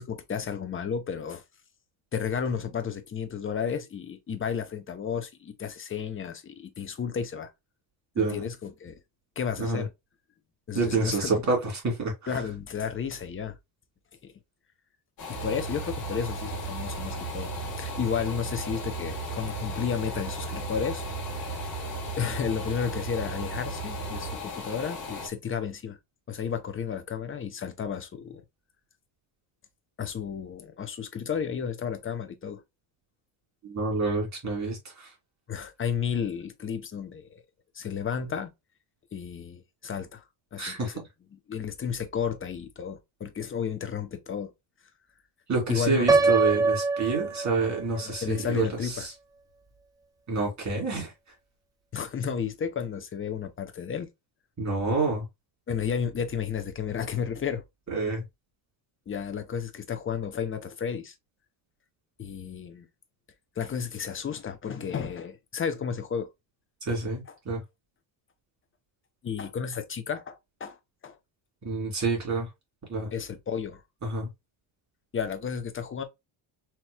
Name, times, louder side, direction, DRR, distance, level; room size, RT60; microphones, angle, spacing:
voice 1, 0.0-1.4 2.1-7.5 8.2-9.0 9.4-9.9 10.7-11.3 12.3-13.6 14.2-14.3 15.3-17.5 17.8-21.0 22.2-26.0 26.3-28.4 30.0-32.6 35.5-37.4 37.7-38.5 39.1-40.2 40.5-40.9 41.5-44.5 45.7-46.1 47.9-49.1 51.9-54.1 55.7-57.6 59.1-61.1 62.2-62.9 63.6-66.3 69.2-70.8 71.0-71.2 73.1-73.8 75.1-76.0, left 7 dB, 25° left, 0.8 m, -32 dB
voice 2, 8.1-8.5 9.6-9.8 10.7-12.1 33.6-35.1 40.6-41.1 45.5-49.1 50.3-51.1 54.6-55.3 57.9-58.2 66.8-67.6 71.6-72.5 72.9-73.1 74.0-74.3, right 3 dB, 35° right, 2.5 m, -28 dB
sound 1, 15.2-25.3, left 4 dB, 45° left, 2.0 m, -38 dB
sound 2, 15.3-24.4, right 6 dB, 80° right, 0.9 m, -37 dB
Piano, 46.1-48.0, right 3 dB, 10° right, 0.3 m, -24 dB
4.4 x 3.0 x 2.2 m
cardioid pair, 125°, 48 cm